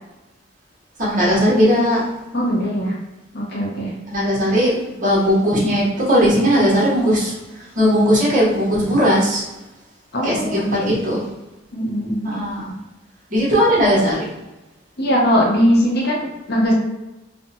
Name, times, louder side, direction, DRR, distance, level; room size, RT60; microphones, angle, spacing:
voice 1, 1.0-2.0 4.1-9.5 10.2-11.3 12.2-12.8 13.3-14.3, equal, 40° right, -5 dB, 0.9 m, -18 dB
voice 2, 2.3-2.9 3.3-3.9 10.1-11.0 11.7-12.3 15.0-16.7, equal, 55° left, -3 dB, 0.7 m, -20 dB
2.6 x 2.1 x 2.6 m, 1.0 s
head